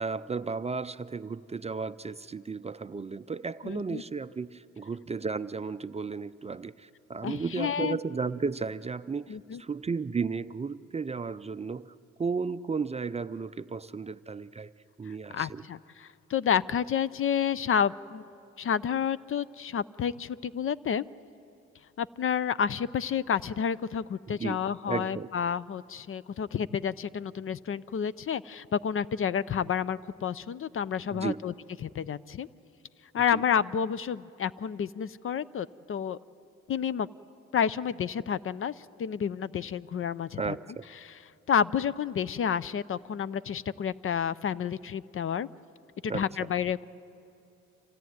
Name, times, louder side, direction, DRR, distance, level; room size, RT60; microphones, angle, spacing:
voice 1, 0.0-11.9 12.2-14.7 15.0-15.6 24.3-24.6 24.9-25.3 31.1-31.4 33.3-33.4 40.4-40.8 46.1-46.2, right 5 dB, 20° right, 12 dB, 0.4 m, -34 dB
voice 2, 3.6-4.0 7.2-8.0 9.3-9.6 15.3-18.2 18.6-21.0 22.0-31.5 31.8-32.5 33.1-36.2 36.7-37.1 37.5-38.7 39.0-40.6 41.0-41.1 41.5-45.5 46.0-46.9, left 8 dB, 45° left, 18 dB, 0.5 m, -30 dB
27.0 x 17.0 x 9.4 m, 2.8 s
cardioid pair, 90°, 30 cm